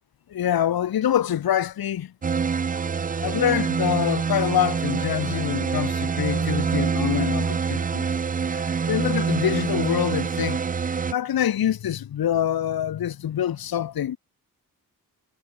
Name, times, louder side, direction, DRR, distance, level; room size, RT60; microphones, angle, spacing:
voice 1, 0.3-2.1 3.2-8.1 8.5-10.6 10.9-14.2, left 10 dB, 75° left, 1.0 m, -25 dB
sound 1, 2.2-11.1, right 6 dB, 25° right, 0.4 m, -25 dB
wide cardioid pair, 125°, 36 cm